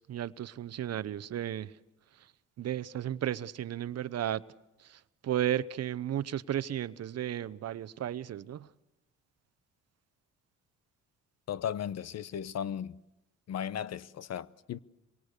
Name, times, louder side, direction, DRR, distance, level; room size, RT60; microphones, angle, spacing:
voice 1, 0.0-1.8 2.1-2.3 2.6-4.4 4.8-8.7, right 11 dB, 55° right, 0.8 m, -34 dB
voice 2, 11.5-13.0 13.5-14.8, left 9 dB, 60° left, 0.9 m, -36 dB
26.5 x 23.5 x 6.7 m
cardioid pair, 90°, 30 cm